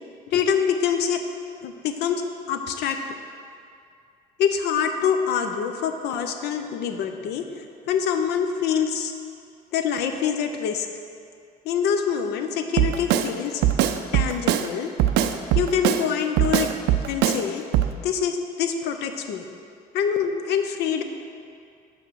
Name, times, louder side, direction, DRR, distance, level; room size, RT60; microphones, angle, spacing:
voice 1, 0.3-1.2 1.6-2.2 2.5-3.0 4.4-9.1 9.7-10.9 11.6-13.6 14.1-14.9 15.5-16.7 17.1-17.6 18.0-19.4 19.9-21.0, left 7 dB, 75° left, 6 dB, 0.6 m, -25 dB
Drum kit, 12.8-13.3 13.6-14.7 15.0-16.0 16.4-17.4 17.7-17.9, right 11 dB, 85° right, 0.4 m, -21 dB
5.7 x 5.4 x 6.2 m, 2.4 s
cardioid pair, 110°, 17 cm